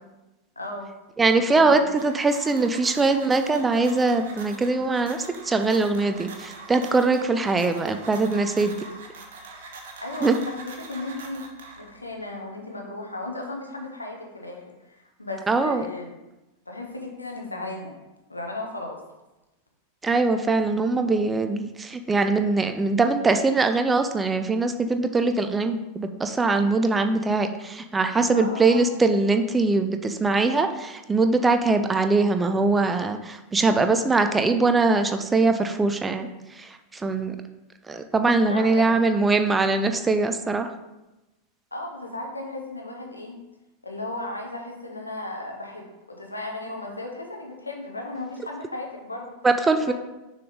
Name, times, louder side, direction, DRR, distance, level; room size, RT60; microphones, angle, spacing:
voice 1, 0.6-0.9 1.5-1.9 10.0-10.3 10.9-11.4 11.8-16.1 16.7-17.9 18.3-19.0 28.3-28.9 38.4-39.0 41.7-43.3 43.8-49.3 49.9-50.0, left 2 dB, 80° left, 1 dB, 1.0 m, -35 dB
voice 2, 1.2-8.8 10.2-10.4 15.5-15.9 20.0-37.4 37.9-40.7 49.4-49.9, right 3 dB, 15° right, 7 dB, 0.4 m, -22 dB
sound 1, 1.5-12.1, right 3 dB, 55° right, 1.0 m, -43 dB
6.5 x 4.0 x 3.6 m, 1.0 s
figure-of-eight pair, 90°, 0 cm